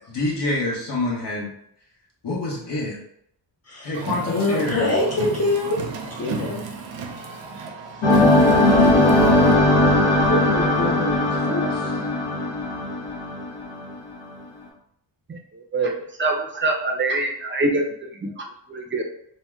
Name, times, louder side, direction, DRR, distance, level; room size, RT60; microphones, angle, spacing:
voice 1, 0.1-1.5 2.2-3.0 3.8-4.9, left 2 dB, 65° left, -3 dB, 1.0 m, -26 dB
Car, 3.9-9.6, right 4 dB, 85° right, 0.6 m, -34 dB
voice 2, 4.3-6.6 7.9-8.0 8.3-9.8 10.1-12.0, left 2 dB, 35° left, -2 dB, 0.4 m, -26 dB
sound 1, 8.0-13.9, left 1 dB, 90° left, 1.0 m, -18 dB
voice 3, 16.2-17.9 18.7-19.0, right 2 dB, 30° right, 1 dB, 0.4 m, -23 dB
2.7 x 2.1 x 3.4 m, 0.71 s
wide cardioid pair, 160°, 44 cm